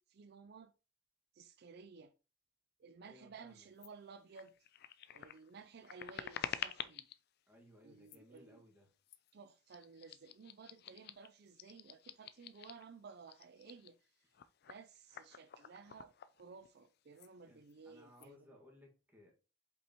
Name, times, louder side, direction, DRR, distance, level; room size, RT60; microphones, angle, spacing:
voice 1, 0.1-0.7 1.3-2.1 2.8-4.5 5.1-7.1 7.8-8.6 9.3-14.0 14.7-18.6, right 5 dB, 55° right, 0.4 m, -56 dB
voice 2, 3.0-3.7 7.5-8.9 13.7-13.8 17.5-19.3, left 1 dB, 10° right, 1.8 m, -62 dB
sound 1, 3.8-3.9 4.3-7.2 8.0-8.4 9.1-9.3 9.7-12.9 13.2-16.9 17.1-17.3 17.6-18.3, left 9 dB, 50° left, 0.4 m, -48 dB
7.9 x 5.3 x 3.0 m
head